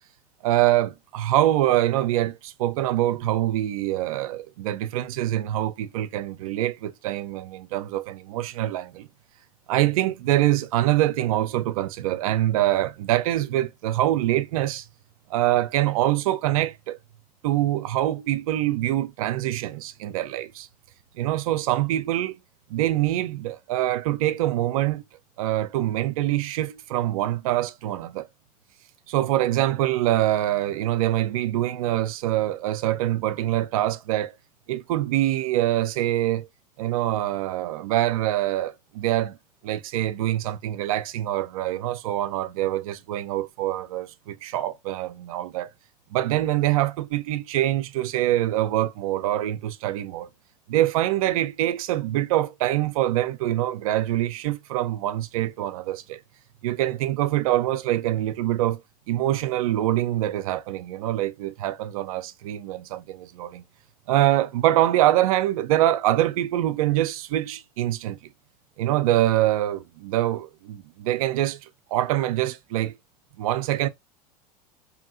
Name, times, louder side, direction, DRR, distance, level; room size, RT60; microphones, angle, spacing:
voice 1, 0.4-9.1 9.7-14.9 15.3-17.0 17.4-20.7 21.2-22.4 22.7-25.0 25.4-28.3 29.1-34.4 34.7-36.5 36.8-39.4 39.6-45.7 46.1-50.3 50.7-56.2 56.6-58.8 59.1-63.6 64.1-68.2 68.8-72.9 73.4-73.9, right 14 dB, 60° right, 0.4 m, -24 dB
2.8 x 2.6 x 2.5 m
figure-of-eight pair, 80°, 20 cm